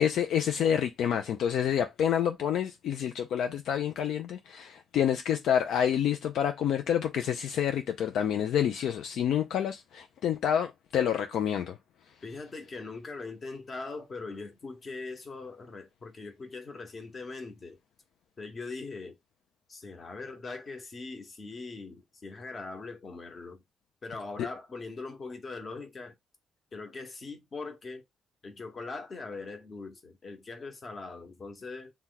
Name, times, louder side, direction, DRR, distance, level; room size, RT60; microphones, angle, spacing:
voice 1, 0.0-11.8, left 9 dB, 75° left, 0.3 m, -28 dB
voice 2, 12.2-17.8 18.4-19.2 19.7-23.6 24.0-26.1 26.7-28.0 28.4-31.9, left 3 dB, 40° left, 0.9 m, -41 dB
2.9 x 2.2 x 3.7 m
cardioid pair, 90°, 0 cm